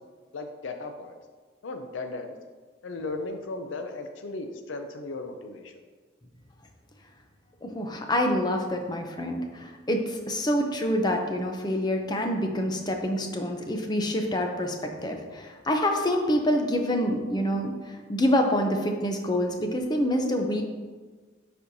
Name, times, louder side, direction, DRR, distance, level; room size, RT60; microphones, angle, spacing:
voice 1, 0.3-1.2 1.6-2.4 2.8-5.8, left 3 dB, 80° left, 6 dB, 0.5 m, -36 dB
voice 2, 7.6-20.6, equal, 20° left, 3 dB, 0.6 m, -27 dB
9.5 x 4.3 x 2.7 m, 1.4 s
head